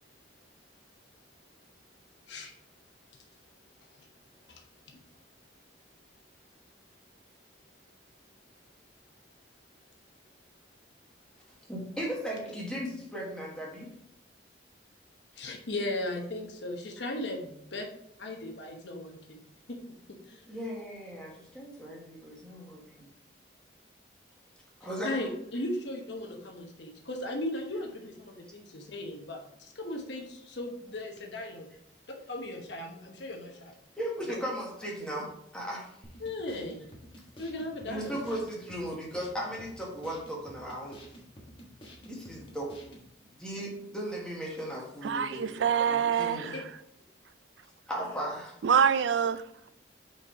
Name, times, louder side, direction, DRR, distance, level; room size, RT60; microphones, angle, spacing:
voice 1, 11.7-13.9 20.5-23.1 24.8-25.2 34.0-35.9 37.8-41.0 42.0-42.9 43.4-46.5 47.9-48.6, equal, 5° left, -3 dB, 1.6 m, -37 dB
voice 2, 15.4-17.8 18.2-19.4 19.7-19.8 20.1-20.4 25.0-31.7 32.3-33.8 34.3-34.4 36.2-36.9 37.4-38.3 46.5-46.6, left 1 dB, 75° left, 2 dB, 1.0 m, -37 dB
sound 1, 36.0-43.1, equal, 30° left, 1.3 m, -51 dB
voice 3, 45.0-46.6 48.6-49.7, right 7 dB, 75° right, 14 dB, 0.4 m, -26 dB
5.6 x 4.6 x 4.6 m, 0.74 s
head